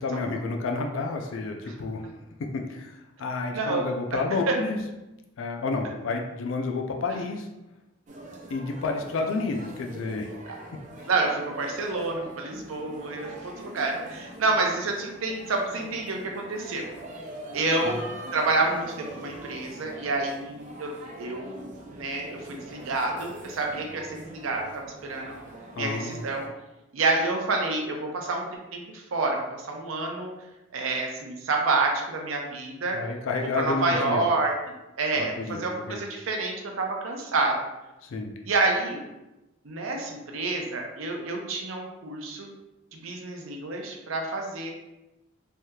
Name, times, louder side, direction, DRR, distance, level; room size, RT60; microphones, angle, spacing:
voice 1, 0.0-2.0 2.5-4.8 5.4-7.5 8.5-10.3 17.9-18.0 25.8-26.3 32.9-34.2 35.2-36.0 38.0-38.3, left 3 dB, 70° left, 3 dB, 0.4 m, -30 dB
voice 2, 3.5-4.2 4.5-4.6 10.5-10.6 11.1-16.8 17.5-18.0 18.3-21.7 21.9-25.3 25.8-26.5 26.9-30.3 30.7-33.0 33.6-34.5 35.0-37.6 38.4-39.0 39.6-42.5 43.0-44.7, right 3 dB, 85° right, 1 dB, 0.6 m, -28 dB
sound 1, 8.1-26.5, right 1 dB, 35° right, 0.4 m, -43 dB
3.3 x 2.8 x 2.3 m, 0.98 s
head